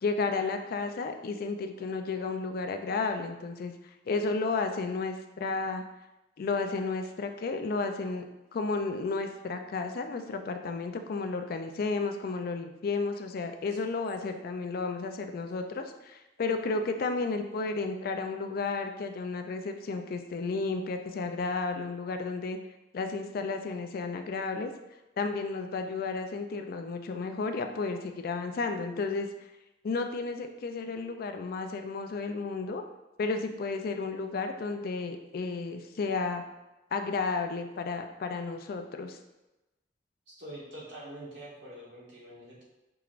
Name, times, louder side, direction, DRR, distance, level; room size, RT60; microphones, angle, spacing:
voice 1, 0.0-3.7 4.1-5.8 6.4-8.3 8.5-22.6 22.9-24.7 25.2-29.3 29.8-32.8 33.2-36.4 36.9-39.2, left 4 dB, 55° left, 6 dB, 0.3 m, -32 dB
voice 2, 40.3-42.6, right 1 dB, 90° right, -5 dB, 1.2 m, -45 dB
4.6 x 2.9 x 2.5 m, 1.0 s
head